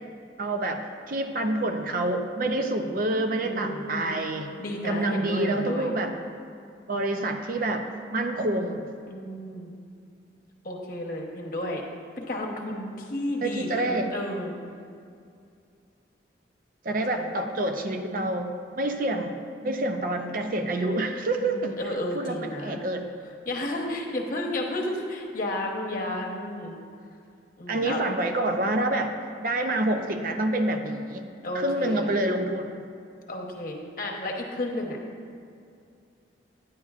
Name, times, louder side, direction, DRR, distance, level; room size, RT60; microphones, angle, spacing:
voice 1, 0.4-0.8 1.1-4.5 4.8-6.1 6.9-8.9 13.4-14.1 16.8-21.8 22.1-23.1 27.7-29.1 29.4-31.2 31.5-32.8, right 1 dB, 45° right, 5 dB, 0.5 m, -27 dB
voice 2, 3.4-4.1 4.6-5.9 9.1-9.7 10.6-11.8 12.2-14.5 17.2-17.3 21.4-22.8 23.5-26.8 27.6-28.0 31.4-32.1 33.3-35.0, left 1 dB, 50° left, 0 dB, 1.0 m, -32 dB
10.5 x 9.4 x 2.4 m, 2.4 s
head